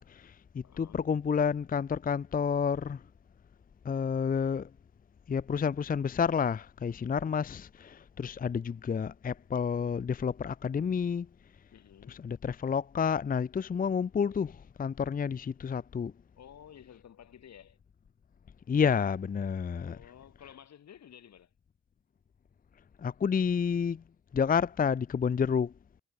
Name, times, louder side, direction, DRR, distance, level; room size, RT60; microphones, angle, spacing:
voice 1, 0.0-3.0 3.8-4.7 5.3-11.3 12.1-16.1 18.7-20.0 23.0-24.0 24.3-25.7, left 6 dB, 30° left, 0.7 m, -30 dB
voice 2, 0.6-1.0 11.7-12.2 16.4-17.8 19.8-21.5, left 9 dB, 60° left, 7.0 m, -53 dB
cardioid pair, 90°, 30 cm